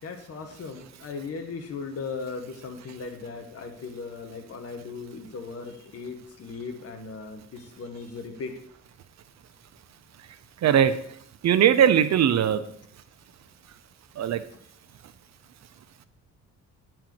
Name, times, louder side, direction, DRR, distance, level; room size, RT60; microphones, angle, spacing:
voice 1, 0.0-8.5, left 4 dB, 50° left, 3 dB, 1.6 m, -37 dB
voice 2, 10.6-10.9 11.4-12.6 14.2-14.4, right 9 dB, 60° right, 11 dB, 0.9 m, -19 dB
10.0 x 4.6 x 7.8 m, 0.67 s
cardioid pair, 90°, 30 cm